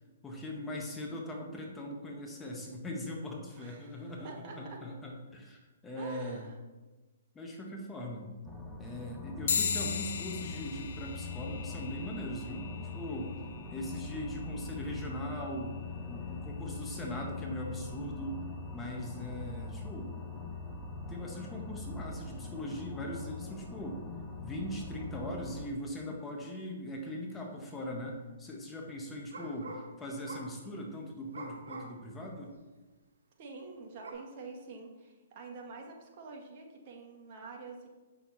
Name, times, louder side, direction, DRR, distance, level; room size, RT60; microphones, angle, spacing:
voice 1, 0.2-6.4 7.3-8.3 8.8-13.4 13.7-15.8 16.1-18.4 18.7-20.2 21.1-24.0 24.4-32.5, left 1 dB, 10° left, -1 dB, 1.4 m, -40 dB
voice 2, 3.5-4.8 6.0-6.6 33.4-37.9, right 4 dB, 45° right, 1 dB, 1.6 m, -47 dB
sound 1, 8.4-25.7, left 3 dB, 5° right, 1.1 m, -42 dB
sound 2, 9.5-19.3, left 7 dB, 70° left, 0.5 m, -40 dB
sound 3, 27.3-27.4 27.8-28.1 29.3-29.9 30.2-30.6 31.3-32.1 32.5-32.6 34.0-34.1, right 2 dB, 80° right, 1.6 m, -45 dB
8.0 x 6.5 x 4.1 m, 1.2 s
hypercardioid pair, 140°, 0 cm